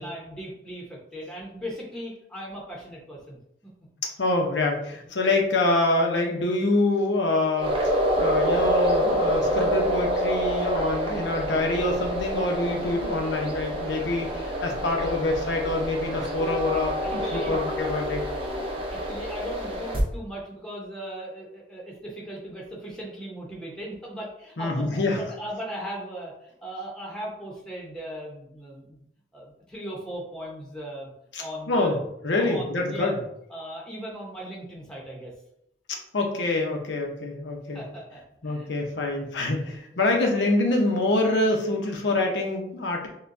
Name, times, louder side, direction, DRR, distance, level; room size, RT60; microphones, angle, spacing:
voice 1, 0.0-3.4 17.0-17.6 18.5-29.0 29.3-31.1 31.4-32.1 32.4-33.1 33.5-35.3 37.7-38.7 39.6-40.0, equal, 5° left, -3 dB, 0.8 m, -38 dB
voice 2, 4.2-18.2 24.6-25.2 31.3-32.0 32.2-33.1 36.1-37.8 38.4-43.1, left 2 dB, 85° left, 1 dB, 0.8 m, -26 dB
sound 1, 7.6-20.0, equal, 30° right, 0.7 m, -27 dB
6.5 x 2.3 x 2.6 m, 0.74 s
head